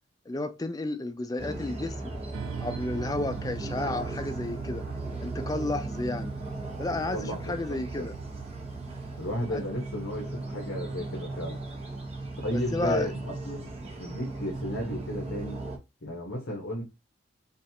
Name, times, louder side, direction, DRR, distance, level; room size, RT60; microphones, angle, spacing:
voice 1, 0.3-2.1 2.6-4.8 5.2-6.3 6.8-8.1 9.5-9.6 12.5-13.1, left 2 dB, 20° left, 0.4 m, -32 dB
sound 1, 1.4-15.8, right 2 dB, 30° right, 0.9 m, -37 dB
sound 2, 2.3-9.4, right 9 dB, 85° right, 0.3 m, -41 dB
voice 2, 6.9-8.2 9.2-11.6 12.4-13.7 14.0-15.6 16.0-16.8, equal, 65° left, 1.2 m, -34 dB
5.2 x 2.5 x 2.9 m
head